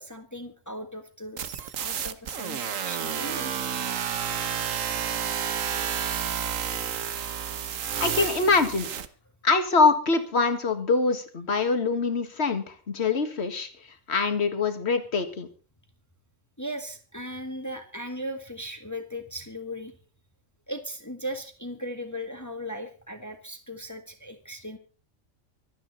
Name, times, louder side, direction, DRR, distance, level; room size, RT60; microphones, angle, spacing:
voice 1, 0.0-3.5 16.6-19.9 20.7-24.8, equal, 15° left, 6 dB, 1.6 m, -37 dB
sound 1, 1.4-9.1, right 8 dB, 75° right, 1.4 m, -30 dB
voice 2, 8.0-8.9 9.4-13.7 14.1-15.5, left 4 dB, 55° left, 8 dB, 2.0 m, -24 dB
25.0 x 8.9 x 4.1 m, 0.38 s
omnidirectional pair, 1.4 m